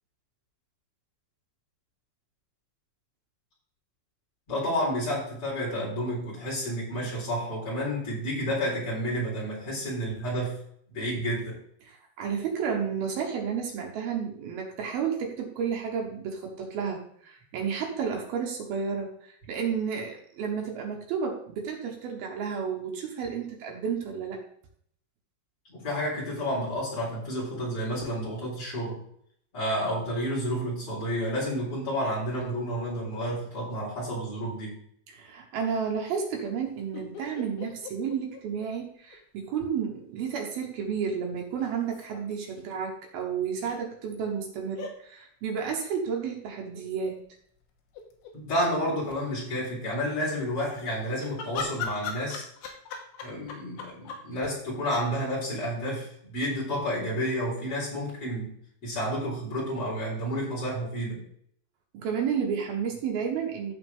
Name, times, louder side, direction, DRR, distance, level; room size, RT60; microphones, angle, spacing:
voice 1, 4.5-10.6 10.9-11.6 25.7-29.0 29.5-34.7 48.3-52.4 53.2-58.5 58.8-61.2, equal, 35° left, -7 dB, 4.8 m, -30 dB
voice 2, 11.8-24.4 35.1-47.2 61.9-63.7, right 6 dB, 70° right, 1 dB, 2.9 m, -31 dB
sound 1, 36.9-39.2 39.4-39.5 41.6-42.4 43.6-43.8 44.8-45.0 46.7-47.1 47.6-47.7 47.9-48.6 50.6-54.2, left 5 dB, 80° left, 3.1 m, -39 dB
14.5 x 4.8 x 3.6 m, 0.67 s
omnidirectional pair, 4.6 m